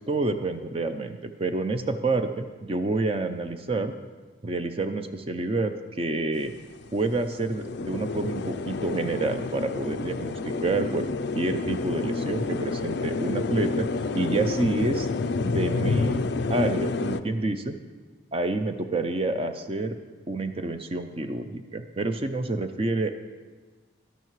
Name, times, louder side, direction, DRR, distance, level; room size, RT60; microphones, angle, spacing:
voice 1, 0.1-3.9 4.4-6.5 6.9-11.1 11.3-13.9 14.1-15.1 15.4-16.2 16.5-17.7 18.3-19.9 20.3-23.1, right 2 dB, 30° right, 8 dB, 0.5 m, -28 dB
sound 1, 6.3-6.4 6.7-17.2, left 3 dB, 55° left, 0.4 m, -29 dB
12.5 x 12.0 x 3.1 m, 1.3 s
head